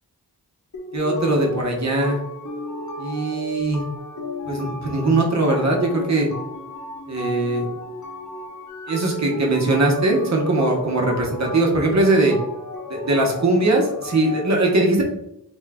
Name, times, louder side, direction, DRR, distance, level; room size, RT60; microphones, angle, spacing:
sound 1, 0.7-14.5, left 2 dB, 55° left, 0.9 m, -34 dB
voice 1, 0.9-2.2 3.0-3.8 4.5-6.3 7.1-7.6 8.9-12.4 12.9-15.0, right 2 dB, 50° right, 0 dB, 0.8 m, -20 dB
2.9 x 2.2 x 3.4 m, 0.80 s
wide cardioid pair, 65°, 36 cm